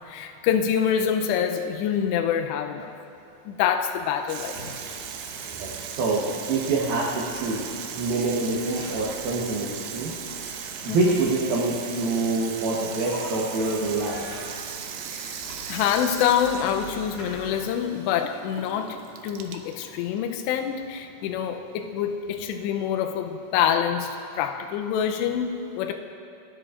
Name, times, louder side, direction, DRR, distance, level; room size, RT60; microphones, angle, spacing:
voice 1, 0.1-2.9 3.5-4.6 10.9-11.1 15.1-15.4 15.7-19.0 19.2-24.1 24.4-25.9, left 8 dB, 80° left, 5 dB, 2.5 m, -26 dB
sound 1, 4.3-17.6, left 1 dB, 45° left, 4.7 m, -43 dB
Water tap faucet / Sink (filling or washing), 4.3-21.8, right 8 dB, 85° right, 3.4 m, -38 dB
voice 2, 5.6-7.6 7.9-10.1 10.8-14.3, right 3 dB, 70° right, -4 dB, 2.4 m, -26 dB
28.5 x 9.9 x 2.5 m, 2.8 s
omnidirectional pair, 5.6 m